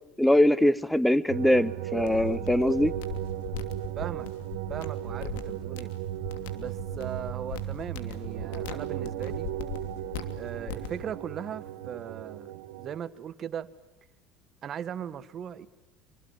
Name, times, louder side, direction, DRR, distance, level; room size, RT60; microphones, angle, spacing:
voice 1, 0.2-2.9, left 1 dB, 5° left, 1.0 m, -22 dB
sound 1, 1.3-13.0, right 13 dB, 85° right, 1.9 m, -36 dB
sound 2, 2.0-11.0, left 8 dB, 85° left, 2.9 m, -41 dB
voice 2, 3.9-4.3 4.7-5.9 6.5-9.5 10.4-13.7 14.6-15.7, right 9 dB, 40° right, 1.7 m, -38 dB
26.0 x 25.0 x 7.6 m
supercardioid pair, 115°, 0 cm